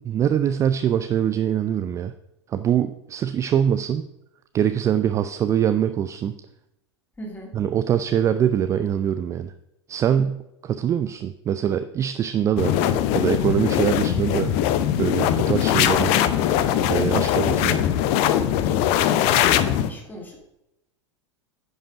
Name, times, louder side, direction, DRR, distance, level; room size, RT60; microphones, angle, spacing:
voice 1, 0.0-2.1 2.5-4.1 4.5-6.3 7.5-9.5 9.9-12.7 13.1-14.6 15.0-16.2 16.9-17.7, right 9 dB, 20° right, 11 dB, 0.4 m, -23 dB
voice 2, 7.2-7.5 17.4-17.8 18.9-20.4, equal, 10° left, 1 dB, 2.2 m, -38 dB
sound 1, 12.6-19.9, left 11 dB, 40° left, 0.6 m, -21 dB
10.5 x 5.5 x 5.0 m, 0.86 s
figure-of-eight pair, 90°, 15 cm